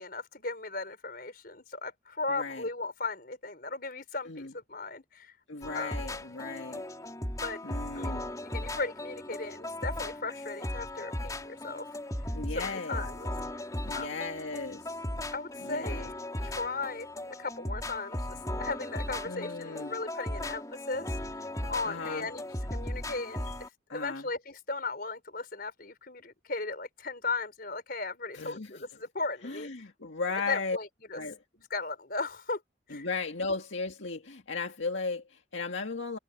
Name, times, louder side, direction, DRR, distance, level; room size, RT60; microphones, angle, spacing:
voice 1, 0.0-5.3 5.7-6.1 7.4-7.6 7.9-11.9 12.5-13.3 13.9-14.3 15.3-16.2 16.4-21.1 21.7-22.5 22.7-29.9 30.3-31.2 31.6-32.6 32.9-33.1, left 3 dB, 50° left, 4.9 m, -37 dB
voice 2, 2.3-2.6 4.3-4.5 5.5-6.8 7.6-8.3 12.3-13.0 13.8-15.0 15.6-16.1 19.2-19.9 21.8-22.3 23.9-24.3 28.3-28.8 29.4-30.8 31.1-31.4 32.9-36.2, left 4 dB, 75° left, 1.9 m, -36 dB
sound 1, 5.6-23.7, left 1 dB, 20° left, 3.6 m, -37 dB
head